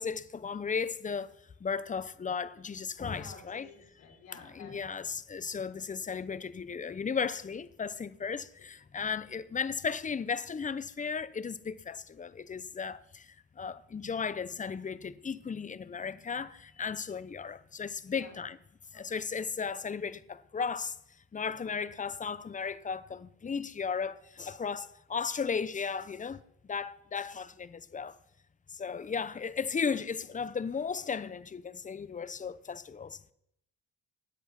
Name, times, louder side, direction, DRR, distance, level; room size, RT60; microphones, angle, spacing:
voice 1, 0.0-1.3 1.6-3.7 4.3-18.6 18.9-21.0 21.3-26.4 26.7-28.2 28.7-33.2, left 6 dB, 25° left, 0.8 m, -35 dB
voice 2, 3.1-3.7 4.0-4.9 18.1-18.4 18.9-19.0, left 5 dB, 70° left, 5.7 m, -51 dB
19.0 x 8.0 x 5.9 m
cardioid pair, 90°, 30 cm